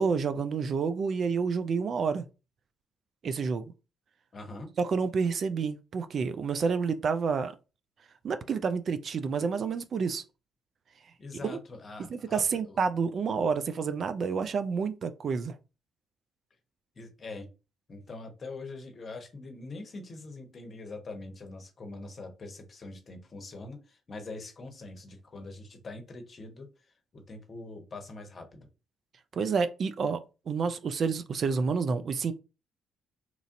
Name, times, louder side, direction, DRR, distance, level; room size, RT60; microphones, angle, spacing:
voice 1, 0.0-2.3 3.2-3.7 4.8-7.5 8.2-10.2 11.4-11.6 12.1-15.6 29.3-32.3, right 5 dB, 55° right, 0.3 m, -29 dB
voice 2, 4.3-4.7 11.2-12.8 17.0-17.5 17.9-26.7 27.1-28.7, left 3 dB, 45° left, 0.9 m, -43 dB
3.0 x 2.5 x 2.5 m
hypercardioid pair, 50°, 0 cm